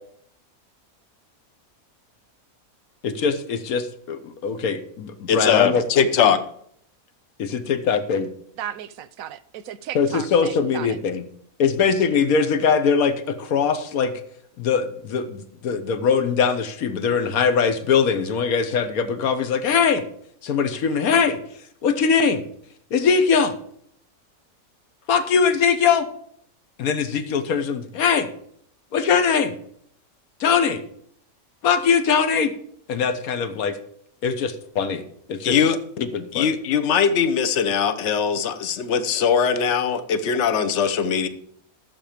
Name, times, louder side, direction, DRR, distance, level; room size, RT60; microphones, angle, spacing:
voice 1, 3.0-5.8 7.4-8.3 9.9-11.2 11.6-14.1 14.6-20.0 20.4-21.4 21.8-22.4 22.9-23.5 25.1-26.1 26.8-28.3 28.9-29.5 30.4-30.8 31.6-32.5 32.9-33.8 34.2-35.6 36.0-36.5, left 6 dB, 75° left, 1.5 m, -21 dB
voice 2, 5.3-6.4 35.4-35.8 36.3-41.3, left 7 dB, 55° left, 1.1 m, -21 dB
voice 3, 8.6-11.0, right 10 dB, 75° right, 1.0 m, -35 dB
13.0 x 7.5 x 5.0 m
omnidirectional pair, 1.5 m